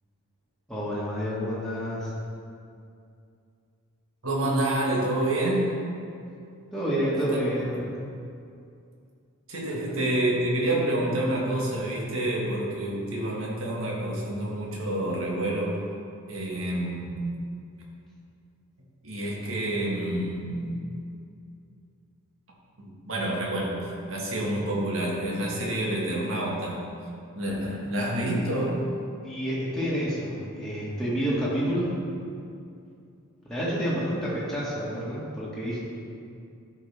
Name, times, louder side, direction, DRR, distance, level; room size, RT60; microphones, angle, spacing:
voice 1, 0.7-2.1 6.7-7.8 9.7-9.8 29.2-31.9 33.5-35.8, equal, ahead, -9 dB, 1.7 m, -29 dB
voice 2, 4.2-5.8 7.2-7.4 7.7-7.8 9.5-15.8 16.3-17.2 19.0-20.7 22.8-23.8 24.1-26.8 27.4-28.8, right 1 dB, 65° right, -3 dB, 1.8 m, -28 dB
12.5 x 5.2 x 3.5 m, 2.5 s
head